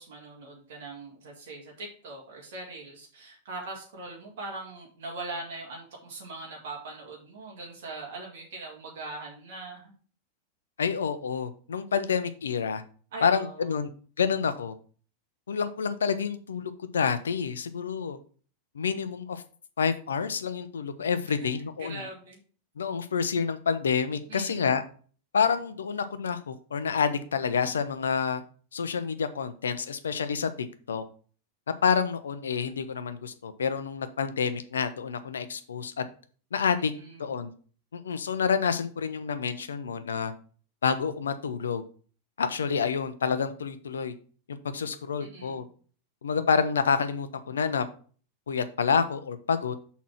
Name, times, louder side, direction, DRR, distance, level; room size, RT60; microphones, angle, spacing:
voice 1, 0.0-9.9 13.1-13.7 21.2-21.3 21.8-22.4 24.3-24.7 36.9-37.3 45.2-45.7, right 2 dB, 55° right, -2 dB, 2.2 m, -41 dB
voice 2, 10.8-12.8 13.2-13.9 14.2-14.7 15.5-18.2 18.7-19.4 19.8-22.0 22.8-24.8 25.3-28.4 28.7-31.0 31.8-36.0 36.5-36.9 37.2-37.5 37.9-40.3 40.8-41.8 42.4-44.1 44.5-45.6 46.2-47.9 48.5-49.7, left 6 dB, 70° left, 11 dB, 0.7 m, -28 dB
6.1 x 4.2 x 5.9 m, 0.42 s
figure-of-eight pair, 90°, 0 cm